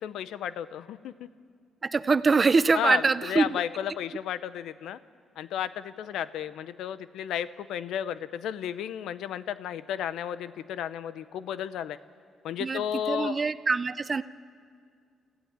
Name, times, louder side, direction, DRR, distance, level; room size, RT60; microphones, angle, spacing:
voice 1, 0.0-1.3 2.7-5.0 5.4-12.0 12.4-13.5, left 10 dB, 80° left, 15 dB, 0.7 m, -33 dB
voice 2, 1.8-3.6 12.6-12.8 13.1-14.2, right 4 dB, 30° right, 15 dB, 0.6 m, -24 dB
29.0 x 14.5 x 8.6 m, 2.2 s
cardioid pair, 90°, 0 cm